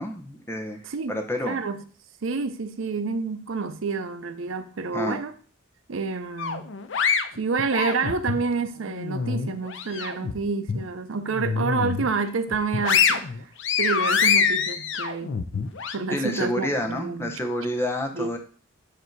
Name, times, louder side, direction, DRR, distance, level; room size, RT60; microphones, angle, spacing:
voice 1, 0.0-0.8 1.1-1.6 4.9-5.2 16.1-18.4, left 1 dB, 10° left, 0.7 m, -28 dB
voice 2, 0.8-1.2 1.5-1.8 2.2-5.3 5.9-6.7 7.3-13.3 13.8-15.4 15.9-17.4 18.1-18.4, right 4 dB, 80° right, 0.6 m, -28 dB
sound 1, 6.4-8.4 8.9-10.3 10.7-10.8 11.3-12.1 12.5-16.0, left 6 dB, 65° left, 0.5 m, -25 dB
7.8 x 2.7 x 4.5 m
head